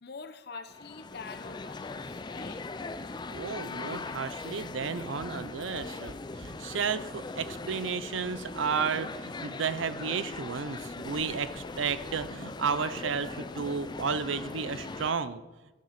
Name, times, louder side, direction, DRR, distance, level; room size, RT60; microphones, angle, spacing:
voice 1, 0.0-2.6, left 4 dB, 60° left, 10 dB, 0.8 m, -45 dB
sound 1, 0.7-15.1, left 3 dB, 25° left, 0.4 m, -40 dB
voice 2, 3.3-15.4, right 5 dB, 85° right, 14 dB, 0.6 m, -33 dB
13.0 x 6.4 x 5.9 m, 1.1 s
head